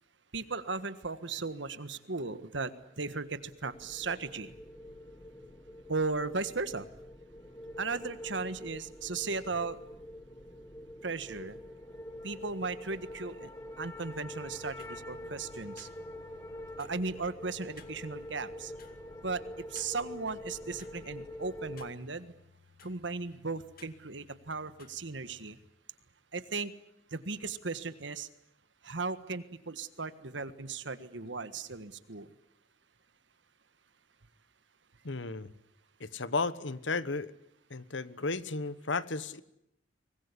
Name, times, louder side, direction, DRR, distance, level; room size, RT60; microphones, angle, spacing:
voice 1, 0.3-4.5 5.9-6.9 7.8-9.8 11.0-11.6 12.2-13.5 13.8-15.9 16.8-18.7 19.2-22.3 22.8-25.6 26.3-26.7 27.1-28.3 28.8-32.3, right 4 dB, 70° right, 13 dB, 1.6 m, -36 dB
sound 1, 3.4-21.9, left 1 dB, 15° left, 1.6 m, -46 dB
sound 2, 14.2-25.7, left 6 dB, 50° left, 2.3 m, -59 dB
voice 2, 35.0-35.5 36.0-37.3 37.7-39.4, left 3 dB, 75° left, 16 dB, 1.2 m, -34 dB
24.5 x 20.0 x 9.9 m, 0.79 s
head